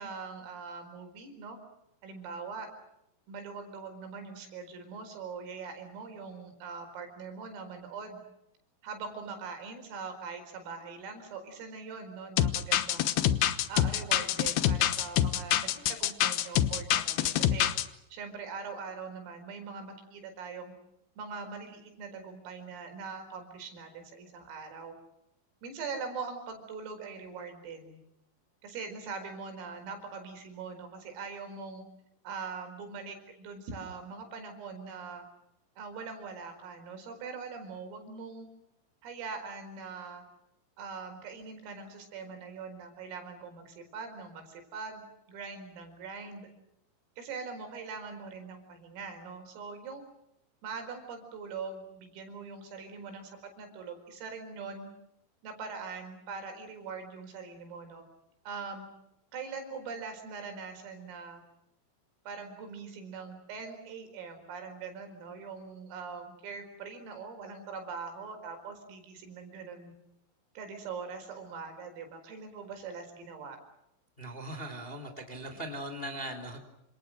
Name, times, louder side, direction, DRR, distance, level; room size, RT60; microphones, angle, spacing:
voice 1, 0.0-1.6 2.0-2.7 3.3-8.2 8.8-13.1 13.7-17.7 18.1-20.7 21.2-24.9 25.6-28.0 28.6-31.8 32.3-35.2 35.8-38.5 39.0-40.2 40.8-45.0 45.3-46.5 47.2-50.0 50.6-54.9 55.4-58.0 58.5-58.9 59.3-61.4 62.3-69.9 70.6-73.6, right 5 dB, 75° right, 6 dB, 7.3 m, -42 dB
sound 1, 12.4-17.8, left 12 dB, 75° left, 2.5 m, -26 dB
voice 2, 74.2-76.6, right 1 dB, 10° left, 7 dB, 3.4 m, -39 dB
29.0 x 27.5 x 6.5 m, 0.81 s
omnidirectional pair, 6.0 m